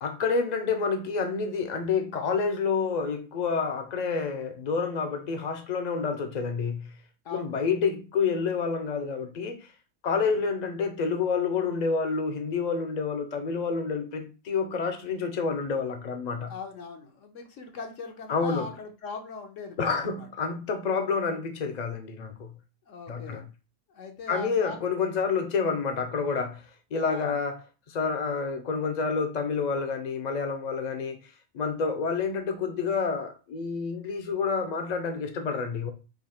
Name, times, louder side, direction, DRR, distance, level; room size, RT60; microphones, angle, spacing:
voice 1, 0.0-6.9 7.3-9.7 10.0-16.5 18.3-18.7 19.8-22.5 23.1-23.4 24.3-26.6 26.9-31.2 31.5-35.9, left 5 dB, 45° left, 0.6 m, -28 dB
voice 2, 7.2-7.6 10.2-10.4 16.5-20.3 22.9-23.4 23.9-24.8 27.0-27.3, left 4 dB, 70° left, 1.2 m, -40 dB
3.9 x 2.8 x 4.2 m
omnidirectional pair, 1.4 m